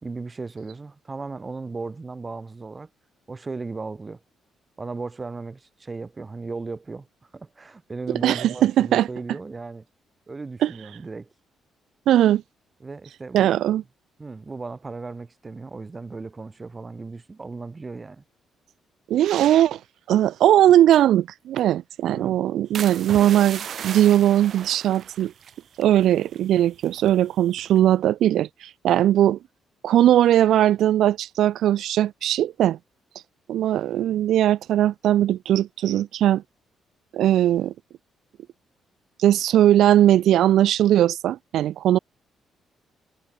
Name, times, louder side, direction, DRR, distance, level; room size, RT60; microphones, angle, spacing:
voice 1, 0.0-2.9 3.3-4.2 4.8-9.9 10.3-11.3 12.8-13.5 14.2-18.2 22.1-22.4, right 3 dB, 25° right, 2.0 m, -36 dB
voice 2, 8.2-9.1 10.6-10.7 12.1-12.4 13.3-13.8 19.1-19.8 20.1-25.3 25.8-29.4 29.8-32.8 33.5-36.4 37.1-37.7 39.2-42.0, right 12 dB, 75° right, 0.3 m, -19 dB
sound 1, 22.7-26.5 26.7-27.1 27.6-27.9, right 8 dB, 60° right, 2.4 m, -36 dB
cardioid pair, 90°, 0 cm